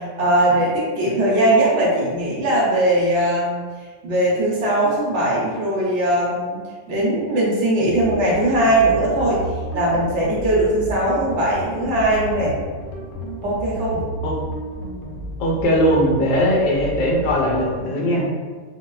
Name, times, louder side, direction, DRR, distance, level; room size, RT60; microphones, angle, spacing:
voice 1, 0.0-3.6 4.0-6.6 6.9-9.4 9.7-12.6 13.4-14.0, right 1 dB, 70° right, -5 dB, 1.0 m, -19 dB
sound 1, 7.9-17.8, right 1 dB, 80° left, 1.0 m, -32 dB
voice 2, 15.4-18.3, equal, 50° left, -2 dB, 0.6 m, -19 dB
3.8 x 2.1 x 2.2 m, 1.5 s
omnidirectional pair, 1.3 m